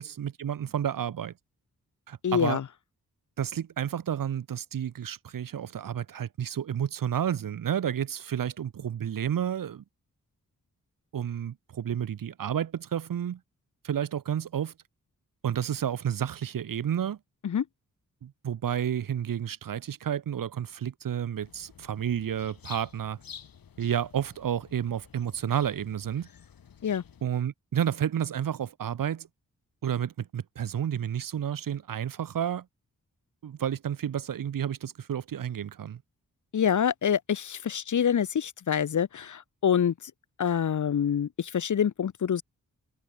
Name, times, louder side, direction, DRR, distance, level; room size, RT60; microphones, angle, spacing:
voice 1, 0.0-1.3 2.1-2.6 3.4-9.8 11.1-13.4 13.8-14.7 15.4-17.2 18.2-23.2 23.8-26.3 27.2-29.3 29.8-32.6 33.4-36.0, right 9 dB, 75° right, 0.9 m, -31 dB
voice 2, 2.2-2.6 17.4-17.6 26.8-27.0 36.5-39.9 40.4-42.4, left 8 dB, 60° left, 0.9 m, -26 dB
sound 1, 21.3-27.3, left 7 dB, 85° left, 3.4 m, -50 dB
wide cardioid pair, 75°, 34 cm